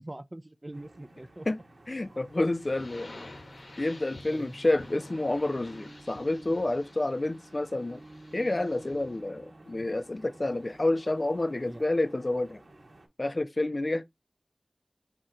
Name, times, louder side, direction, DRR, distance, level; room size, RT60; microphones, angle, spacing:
voice 1, 0.0-1.5 4.3-4.5 11.6-11.8, right 1 dB, 35° right, 0.4 m, -43 dB
sound 1, 0.7-13.1, right 1 dB, 70° right, 1.1 m, -51 dB
voice 2, 1.9-3.1 3.8-8.0 8.3-12.6 13.2-14.0, left 2 dB, 50° left, 0.5 m, -29 dB
sound 2, 2.5-9.2, left 2 dB, 90° left, 1.0 m, -50 dB
4.4 x 2.9 x 3.7 m
wide cardioid pair, 45°, 0 cm